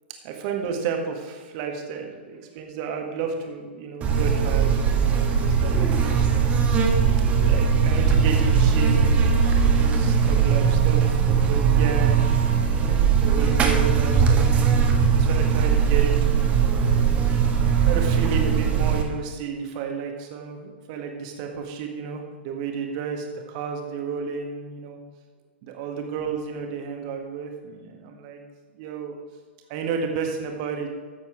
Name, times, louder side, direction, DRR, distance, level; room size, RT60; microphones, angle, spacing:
voice 1, 0.2-6.7 7.4-11.0 11.5-14.5 15.1-16.7 17.8-25.0 25.6-28.4 28.7-29.2 29.7-30.9, right 6 dB, 35° right, 3 dB, 1.9 m, -32 dB
Buzz, 4.0-19.0, right 6 dB, 20° right, 1.5 m, -20 dB
14.5 x 7.9 x 4.7 m, 1.4 s
figure-of-eight pair, 110°, 6 cm